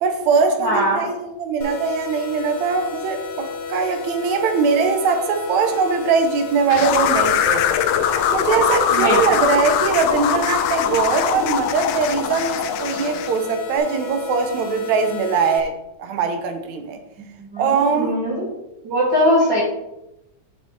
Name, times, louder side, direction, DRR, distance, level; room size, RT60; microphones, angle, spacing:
voice 1, 0.0-7.7 8.3-15.7 16.0-17.0 17.6-18.1, right 5 dB, 75° right, 5 dB, 2.1 m, -21 dB
voice 2, 0.6-1.1 8.9-9.2 17.4-18.5 18.8-19.6, equal, 50° right, -5 dB, 1.5 m, -20 dB
sound 1, 1.6-15.6, left 4 dB, 65° left, 1.8 m, -32 dB
sound 2, 6.7-13.4, left 9 dB, 85° left, 1.4 m, -21 dB
7.4 x 5.8 x 3.2 m, 0.88 s
omnidirectional pair, 3.4 m